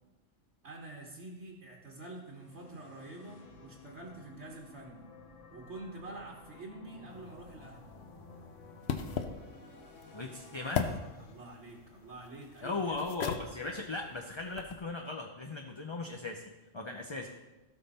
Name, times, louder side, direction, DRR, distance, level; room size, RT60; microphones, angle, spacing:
voice 1, 0.6-5.1 5.5-7.9 11.2-13.0, right 2 dB, 65° right, -2 dB, 1.7 m, -47 dB
sound 1, 2.0-12.2, left 3 dB, 80° left, 1.5 m, -54 dB
sound 2, 7.1-14.8, left 6 dB, 60° left, 1.0 m, -40 dB
voice 2, 10.1-10.9 12.6-16.4 16.7-17.3, left 3 dB, 30° left, 3 dB, 0.6 m, -37 dB
16.0 x 5.9 x 4.2 m, 1.1 s
omnidirectional pair, 1.3 m